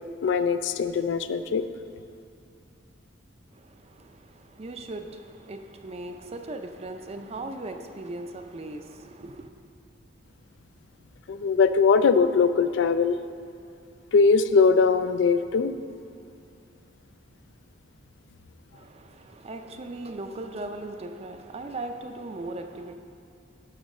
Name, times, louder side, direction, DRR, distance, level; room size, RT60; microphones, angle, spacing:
voice 1, 0.2-1.6 11.3-13.2 14.1-15.7, left 5 dB, 65° left, 11 dB, 0.3 m, -21 dB
voice 2, 3.5-9.5 18.7-22.9, right 2 dB, 30° right, 6 dB, 0.5 m, -38 dB
11.5 x 4.0 x 5.3 m, 2.5 s
head